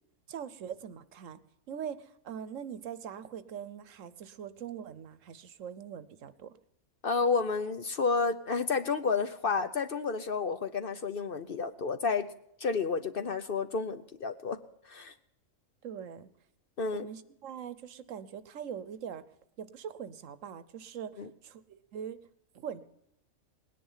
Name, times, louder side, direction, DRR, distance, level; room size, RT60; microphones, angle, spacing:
voice 1, 0.3-1.4 1.7-6.6 15.8-16.3 16.9-19.2 19.6-21.6 21.9-22.2 22.5-22.8, right 8 dB, 70° right, 15 dB, 1.2 m, -42 dB
voice 2, 7.0-12.3 12.6-14.6 14.9-15.1 16.8-17.1 21.2-21.3, left 4 dB, 50° left, 10 dB, 0.8 m, -30 dB
19.0 x 10.5 x 5.6 m, 0.75 s
omnidirectional pair, 1.4 m